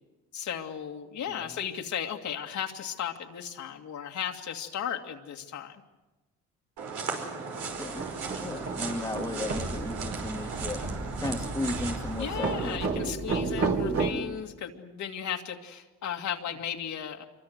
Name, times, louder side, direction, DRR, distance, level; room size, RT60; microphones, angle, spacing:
voice 1, 0.3-5.8 12.1-17.2, left 9 dB, 70° left, 3 dB, 2.3 m, -35 dB
sound 1, 6.8-12.8, right 4 dB, 80° right, 5.2 m, -37 dB
sound 2, 7.6-14.1, right 4 dB, 50° right, 3.5 m, -32 dB
voice 2, 8.4-10.9 11.2-13.1, left 2 dB, 10° left, 3 dB, 1.9 m, -35 dB
26.0 x 24.0 x 8.0 m, 1.1 s
cardioid pair, 90°, 30 cm